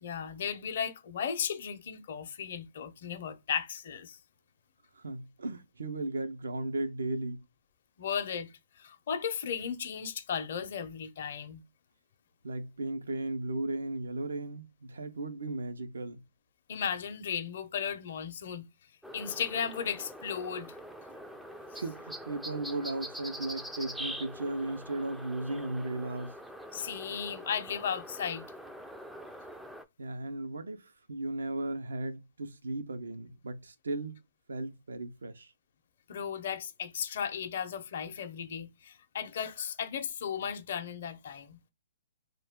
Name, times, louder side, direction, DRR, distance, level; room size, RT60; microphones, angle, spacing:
voice 1, 0.0-4.2 8.0-8.5 8.8-11.6 16.7-18.7 19.1-20.7 21.7-21.8 26.7-28.5 36.1-41.6, left 7 dB, 55° left, 0.6 m, -35 dB
voice 2, 5.0-7.4 12.4-16.2 21.8-26.3 30.0-34.2 34.5-35.5, right 2 dB, 85° right, 0.6 m, -36 dB
sound 1, 19.0-29.8, equal, ahead, 0.3 m, -44 dB
2.4 x 2.2 x 3.6 m
hypercardioid pair, 140°, 0 cm